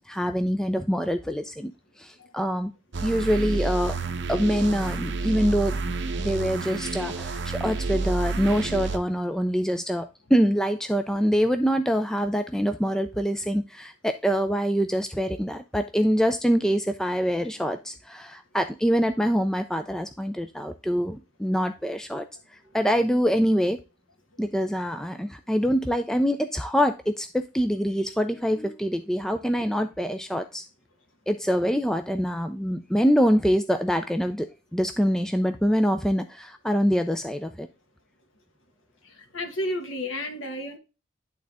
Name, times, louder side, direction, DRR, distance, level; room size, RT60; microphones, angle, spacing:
voice 1, 0.1-1.7 2.0-2.7 3.0-3.9 4.3-5.8 6.2-22.2 22.7-23.8 24.4-30.6 31.3-37.7, equal, 5° left, 0.3 m, -25 dB
sound 1, 2.9-9.0, right 3 dB, 65° right, 0.8 m, -30 dB
voice 2, 39.0-40.8, left 1 dB, 80° left, 1.6 m, -32 dB
11.0 x 3.8 x 3.4 m
head